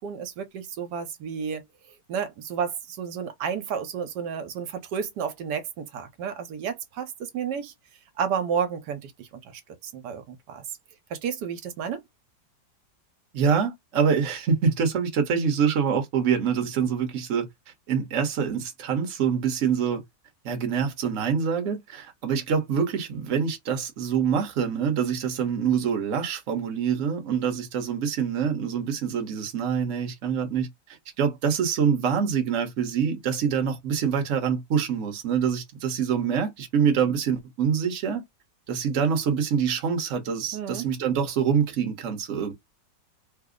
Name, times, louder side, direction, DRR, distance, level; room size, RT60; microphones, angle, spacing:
voice 1, 0.0-1.6 2.1-7.7 8.2-10.6 11.1-12.0 40.5-40.9, right 7 dB, 70° right, 1.3 m, -31 dB
voice 2, 13.3-17.5 17.9-20.0 20.4-30.7 31.2-38.2 38.7-42.5, right 7 dB, 50° right, 1.1 m, -25 dB
3.3 x 2.0 x 3.6 m
omnidirectional pair, 1.9 m